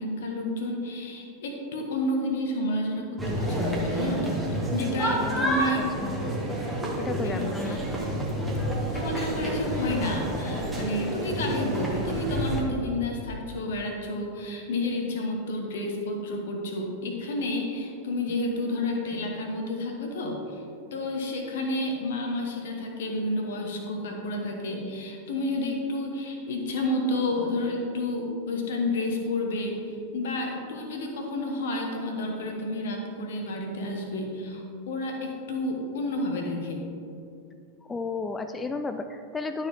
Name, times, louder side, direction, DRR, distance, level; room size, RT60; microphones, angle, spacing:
voice 1, 0.0-6.0 7.2-7.8 8.9-20.6 20.9-36.8, left 1 dB, 60° left, 2 dB, 1.3 m, -30 dB
sound 1, 3.2-12.6, right 1 dB, 5° right, 1.5 m, -29 dB
voice 2, 5.1-6.1 7.0-7.8 37.8-39.7, left 4 dB, 15° left, 8 dB, 0.3 m, -33 dB
11.5 x 4.5 x 3.7 m, 2.6 s
figure-of-eight pair, 90°, 0 cm